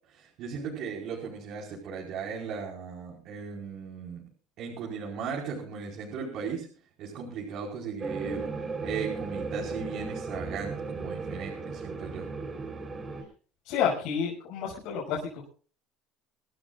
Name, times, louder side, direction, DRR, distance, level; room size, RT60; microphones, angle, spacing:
voice 1, 0.1-4.2 4.6-6.7 7.0-8.5 8.8-12.3, right 6 dB, 60° right, -2 dB, 4.9 m, -37 dB
sound 1, 8.0-13.2, right 4 dB, 25° right, 4.1 m, -36 dB
voice 2, 13.6-15.5, left 7 dB, 75° left, -3 dB, 6.4 m, -30 dB
25.5 x 15.0 x 2.5 m, 0.39 s
supercardioid pair, 115°, 0 cm